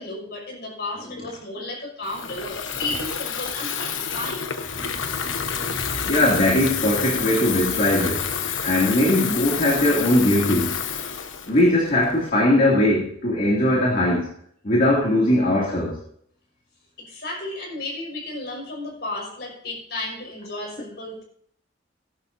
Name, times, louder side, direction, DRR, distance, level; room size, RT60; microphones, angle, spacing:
voice 1, 0.0-4.5 17.0-21.2, left 2 dB, 60° left, 0 dB, 5.4 m, -33 dB
Water tap faucet / Fill (with liquid), 2.0-12.3, left 7 dB, 80° left, 1.1 m, -29 dB
voice 2, 5.3-8.3 8.6-10.7 11.5-14.3 14.6-16.0, left 1 dB, 45° left, -4 dB, 2.5 m, -20 dB
19.0 x 11.0 x 2.7 m, 0.64 s
head